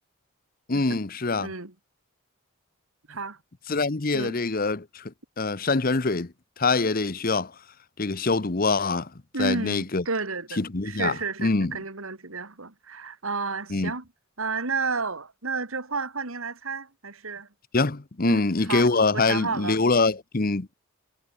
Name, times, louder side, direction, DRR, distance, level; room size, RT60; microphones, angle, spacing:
voice 1, 0.7-1.5 3.7-6.3 6.6-7.5 8.0-9.1 9.4-10.0 10.6-11.7 13.7-13.9 17.7-20.7, left 3 dB, 40° left, 0.9 m, -24 dB
voice 2, 1.4-1.7 3.1-3.4 4.1-4.4 9.3-14.1 14.4-17.5 18.2-19.8, right 4 dB, 75° right, 2.6 m, -32 dB
head